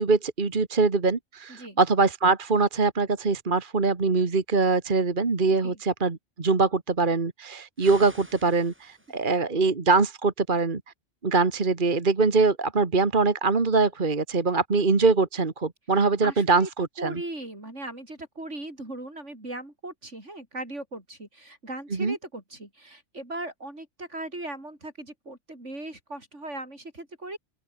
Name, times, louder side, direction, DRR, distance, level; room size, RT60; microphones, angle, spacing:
voice 1, 0.0-10.8 11.2-17.2 21.9-22.1, right 3 dB, 45° right, 1.8 m, -23 dB
voice 2, 1.5-1.8 5.6-5.8 16.0-16.7 17.0-27.4, right 2 dB, 75° right, 6.8 m, -38 dB
sound 1, 7.8-9.4, equal, 10° right, 7.1 m, -48 dB
open air
omnidirectional pair, 1.2 m